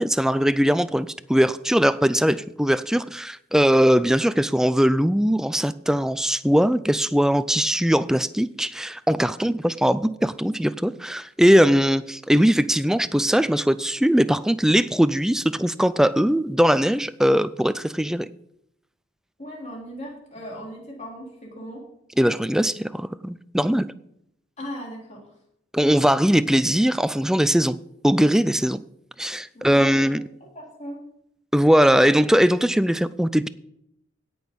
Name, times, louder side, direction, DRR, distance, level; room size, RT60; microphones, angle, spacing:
voice 1, 0.0-18.3 22.2-23.9 25.7-27.8 28.0-28.8 29.2-30.2 31.5-33.5, equal, 5° right, 0.3 m, -20 dB
voice 2, 19.4-21.8 24.6-25.2 29.5-30.1 30.6-31.0, equal, 35° left, 3.5 m, -37 dB
17.0 x 6.2 x 5.3 m
head